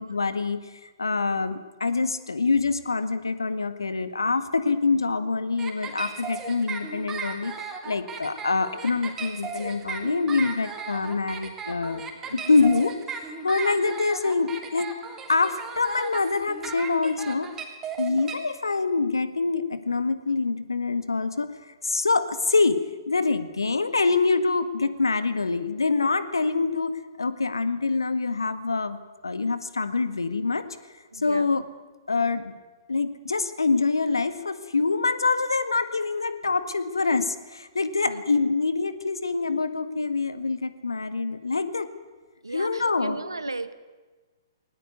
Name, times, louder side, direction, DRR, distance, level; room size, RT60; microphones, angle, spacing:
voice 1, 0.0-7.5 7.9-12.0 12.3-14.9 15.3-17.5 18.0-22.8 23.1-29.0 29.2-30.7 31.1-31.6 32.1-32.5 32.9-41.9 42.5-43.2, left 4 dB, 75° left, 12 dB, 1.8 m, -25 dB
sound 1, 5.6-18.3, right 6 dB, 15° right, 3.0 m, -36 dB
voice 2, 12.3-12.7 31.1-31.5 38.1-38.2 42.4-43.7, right 3 dB, 80° right, 14 dB, 1.5 m, -36 dB
19.0 x 18.5 x 9.6 m, 1.3 s
figure-of-eight pair, 120°, 2 cm